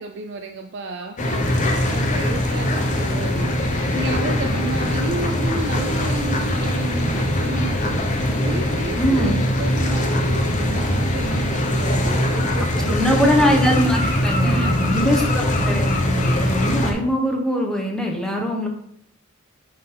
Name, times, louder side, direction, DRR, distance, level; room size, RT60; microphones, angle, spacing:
voice 1, 0.0-13.3 14.0-15.1, right 3 dB, 55° right, 5 dB, 0.5 m, -31 dB
sound 1, 1.2-16.9, left 1 dB, 35° left, 1.0 m, -22 dB
voice 2, 9.0-9.3 12.7-18.7, equal, 5° left, 0 dB, 1.2 m, -22 dB
9.5 x 3.9 x 3.8 m, 0.69 s
head